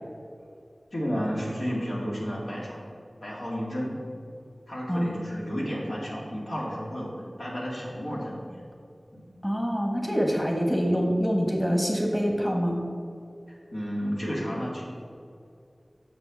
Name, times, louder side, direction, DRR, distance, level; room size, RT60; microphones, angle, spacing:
voice 1, 0.9-2.8 3.2-3.9 4.7-7.1 7.4-8.5 9.1-9.2 13.7-14.8, equal, 85° left, -5 dB, 2.2 m, -32 dB
voice 2, 4.9-5.3 9.4-12.8, equal, 10° left, 0 dB, 1.6 m, -25 dB
6.7 x 6.7 x 6.3 m, 2.4 s
wide cardioid pair, 45°, 0 cm